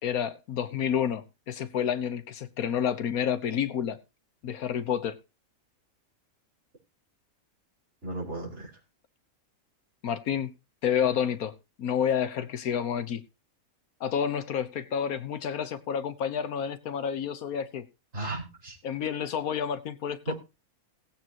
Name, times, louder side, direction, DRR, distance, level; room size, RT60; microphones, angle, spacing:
voice 1, 0.0-4.0 4.4-5.2 10.0-10.5 10.8-11.5 11.8-13.2 14.0-17.8 18.8-20.3, left 8 dB, 80° left, 12 dB, 1.4 m, -29 dB
voice 2, 8.0-8.7 18.1-18.8 20.3-20.4, right 2 dB, 50° right, -2 dB, 5.5 m, -35 dB
18.5 x 8.7 x 2.9 m, 0.28 s
omnidirectional pair, 1.5 m